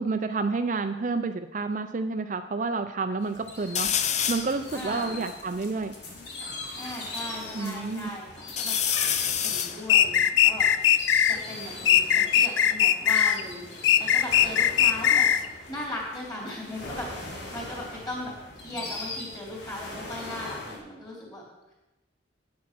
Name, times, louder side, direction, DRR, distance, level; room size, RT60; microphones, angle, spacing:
voice 1, 0.0-3.9 4.3-5.9 7.5-8.1, right 4 dB, 40° right, 8 dB, 0.4 m, -29 dB
sound 1, 3.2-20.8, left 2 dB, 70° left, 2.3 m, -41 dB
sound 2, 3.7-4.6 5.1-5.2 5.4-7.0 7.5-8.1 8.5-11.9 12.8-14.7 15.0-15.5 17.0-19.7 20.0-20.8, left 9 dB, 40° left, 0.5 m, -32 dB
voice 2, 4.7-5.3 6.8-8.8 9.4-10.7 11.3-15.3 15.7-21.4, left 1 dB, 20° left, -3 dB, 3.5 m, -38 dB
sound 3, 9.9-11.4 11.9-13.4 13.8-15.5, left 9 dB, 85° left, 0.5 m, -20 dB
9.5 x 8.6 x 6.0 m, 1.0 s
head